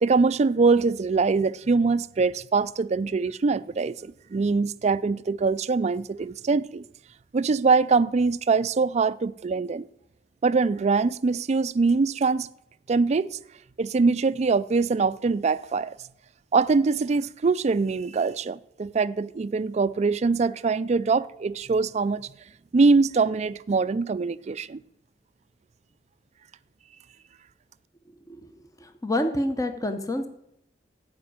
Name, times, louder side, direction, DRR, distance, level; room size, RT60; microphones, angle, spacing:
voice 1, 0.0-6.8 7.3-9.9 10.4-12.5 12.9-13.3 13.8-15.9 16.5-22.3 22.7-24.8, right 4 dB, 40° right, 0.4 m, -23 dB
voice 2, 28.8-30.3, left 1 dB, 20° left, 0.9 m, -27 dB
14.5 x 5.1 x 8.6 m
head